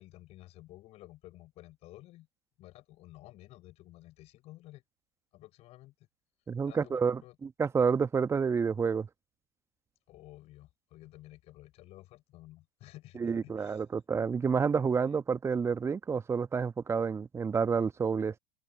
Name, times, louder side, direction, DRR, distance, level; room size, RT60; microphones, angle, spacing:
voice 1, 0.0-2.3 2.6-4.8 5.3-5.9 6.6-7.3 10.1-13.8 15.1-15.2, left 16 dB, 40° left, 6.8 m, -53 dB
voice 2, 6.5-9.1 13.1-18.4, right 6 dB, 15° right, 1.2 m, -29 dB
open air
figure-of-eight pair, 85°, 17 cm